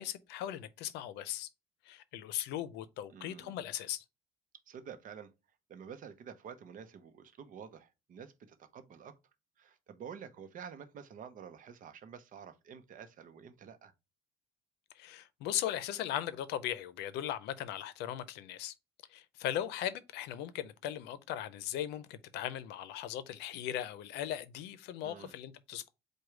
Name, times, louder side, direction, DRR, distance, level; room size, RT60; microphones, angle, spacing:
voice 1, 0.0-1.5 1.9-4.0 15.0-18.7 19.1-25.9, left 11 dB, 90° left, 0.5 m, -38 dB
voice 2, 3.1-3.6 4.7-5.3 5.7-9.2 9.6-13.9 25.0-25.3, right 7 dB, 50° right, 0.7 m, -49 dB
4.8 x 2.3 x 4.5 m
cardioid pair, 110°, 17 cm